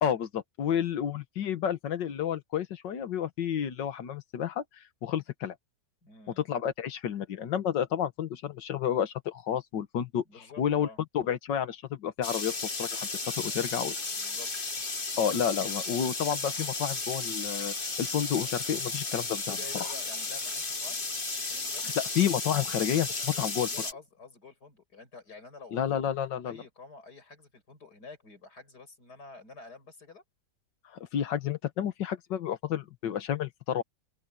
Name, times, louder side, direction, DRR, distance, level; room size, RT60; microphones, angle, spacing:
voice 1, 0.0-4.6 5.0-5.6 6.4-10.2 10.6-10.9 11.1-13.1 13.4-14.0 15.2-19.9 22.0-23.7 25.7-26.6 31.1-33.8, left 9 dB, 85° left, 1.9 m, -30 dB
voice 2, 6.0-6.4 10.3-11.0 14.2-14.5 19.5-21.0 21.5-21.8 23.7-26.1 26.4-30.2, left 4 dB, 65° left, 6.0 m, -49 dB
sound 1, 12.2-23.9, left 3 dB, 30° left, 2.0 m, -34 dB
open air
omnidirectional pair, 1.9 m